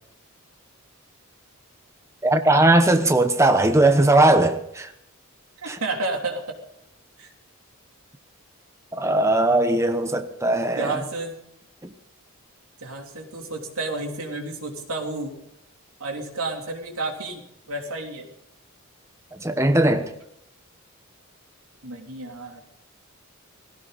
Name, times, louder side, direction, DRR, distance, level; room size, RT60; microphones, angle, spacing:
voice 1, 2.2-4.9 5.7-5.8 8.9-11.0 11.8-11.9 19.3-20.1, right 2 dB, 15° right, 1.0 m, -19 dB
voice 2, 5.6-6.5 7.2-7.3 10.7-11.4 12.8-15.3 16.0-18.3 21.8-22.6, right 2 dB, 80° right, 3.4 m, -31 dB
18.5 x 16.5 x 4.2 m
head